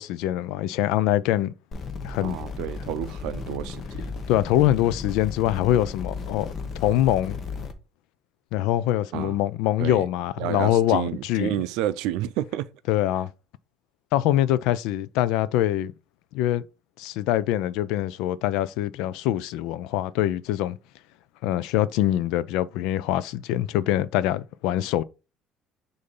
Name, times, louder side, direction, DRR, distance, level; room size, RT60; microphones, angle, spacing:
voice 1, 0.0-1.5 2.0-2.4 4.3-6.5 6.8-7.4 8.5-11.5 12.9-13.3 14.1-15.9 16.3-16.7 17.0-20.8 21.4-25.0, left 13 dB, 85° left, 0.4 m, -24 dB
sound 1, 1.7-7.7, left 4 dB, 30° left, 0.9 m, -35 dB
voice 2, 2.2-4.1 9.1-9.4 9.8-10.1 10.4-12.7 21.4-21.5, right 13 dB, 90° right, 0.4 m, -30 dB
6.6 x 2.7 x 5.3 m
cardioid pair, 160°, 0 cm